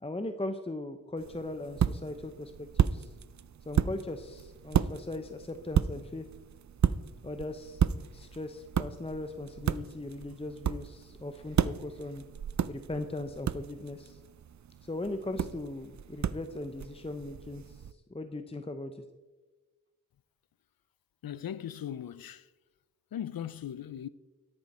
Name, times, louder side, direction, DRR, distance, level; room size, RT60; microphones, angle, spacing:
voice 1, 0.0-3.1 3.7-6.3 7.2-7.8 8.1-12.2 12.7-14.2 14.8-19.0, left 2 dB, 15° left, 0.7 m, -39 dB
sound 1, 1.2-17.9, right 8 dB, 55° right, 0.5 m, -33 dB
voice 2, 21.2-22.5 23.1-24.1, left 10 dB, 90° left, 0.6 m, -38 dB
13.0 x 11.0 x 4.3 m
wide cardioid pair, 75°, 35 cm